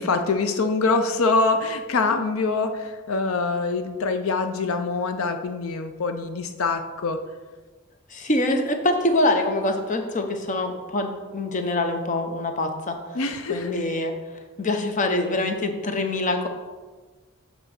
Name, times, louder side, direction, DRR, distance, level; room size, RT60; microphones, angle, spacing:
voice 1, 0.0-7.2 13.1-13.8, left 3 dB, 85° left, 7 dB, 0.5 m, -24 dB
voice 2, 8.1-13.0 13.5-14.1 14.6-16.5, left 2 dB, 35° left, 5 dB, 0.8 m, -24 dB
7.8 x 3.9 x 6.3 m, 1.3 s
head